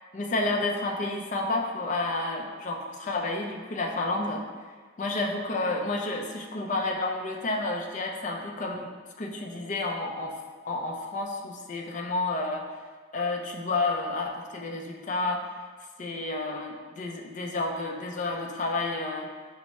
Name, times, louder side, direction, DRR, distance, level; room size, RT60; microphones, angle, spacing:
voice 1, 0.1-4.4 5.0-8.9 9.2-10.4 10.6-12.6 13.1-15.5 16.0-19.3, left 2 dB, 40° left, 1 dB, 0.4 m, -30 dB
4.5 x 2.0 x 4.1 m, 1.5 s
head